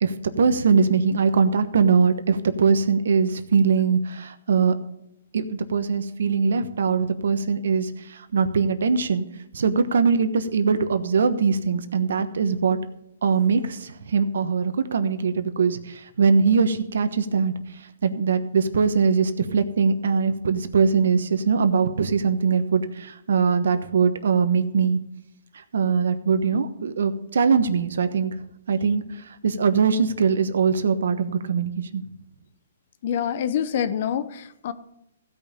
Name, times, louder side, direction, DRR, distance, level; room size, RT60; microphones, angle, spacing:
voice 1, 0.0-4.7 5.3-9.2 9.5-12.8 13.2-17.5 18.0-25.0 25.7-28.4 28.7-32.0, right 5 dB, 75° right, 10 dB, 1.1 m, -22 dB
voice 2, 33.0-34.7, left 9 dB, 50° left, 13 dB, 0.8 m, -26 dB
15.5 x 5.4 x 6.7 m, 0.85 s
hypercardioid pair, 155°, 0 cm